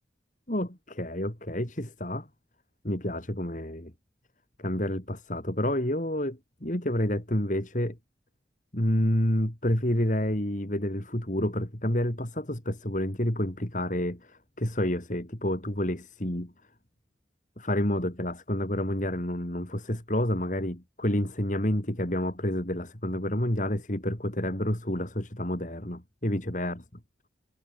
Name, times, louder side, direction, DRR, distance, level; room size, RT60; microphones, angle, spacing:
voice 1, 0.5-2.3 2.8-3.9 4.6-8.0 8.7-16.5 17.6-26.8, left 1 dB, 45° left, 3.8 m, -29 dB
head